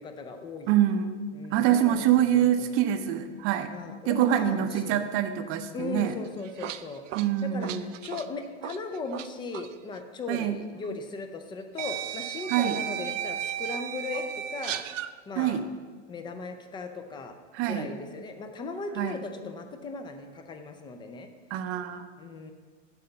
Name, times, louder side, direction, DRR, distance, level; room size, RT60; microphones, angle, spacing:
voice 1, 0.0-0.7 1.3-2.0 2.3-2.7 3.7-5.0 5.7-7.0 7.4-7.7 8.0-14.8 15.3-15.6 16.1-17.3 17.7-21.3 22.2-22.5, left 3 dB, 15° left, 7 dB, 0.4 m, -37 dB
voice 2, 0.7-1.2 1.5-3.7 4.1-6.1 7.1-7.9 10.3-10.6 12.5-12.8 15.4-15.6 17.5-17.9 19.0-19.2 21.5-22.1, right 11 dB, 35° right, 9 dB, 0.6 m, -25 dB
sound 1, 6.2-9.3 9.5-9.7 10.8-10.9 11.8-15.1, right 11 dB, 80° right, 0.5 m, -34 dB
7.8 x 4.2 x 6.8 m, 1.5 s
hypercardioid pair, 115°, 38 cm